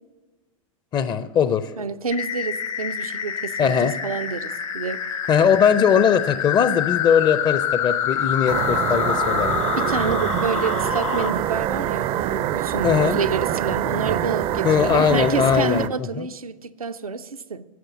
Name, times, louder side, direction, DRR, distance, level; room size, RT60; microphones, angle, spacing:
voice 1, 0.9-1.7 3.6-3.9 5.3-9.6 12.8-13.2 14.6-16.3, left 7 dB, 25° left, 0.5 m, -20 dB
voice 2, 1.8-5.0 9.8-17.6, right 5 dB, 85° right, 0.5 m, -28 dB
sound 1, 2.1-11.3, left 9 dB, 65° left, 1.0 m, -26 dB
sound 2, 8.5-15.9, right 11 dB, 30° right, 0.4 m, -25 dB
9.3 x 6.7 x 8.4 m
figure-of-eight pair, 90°, 18 cm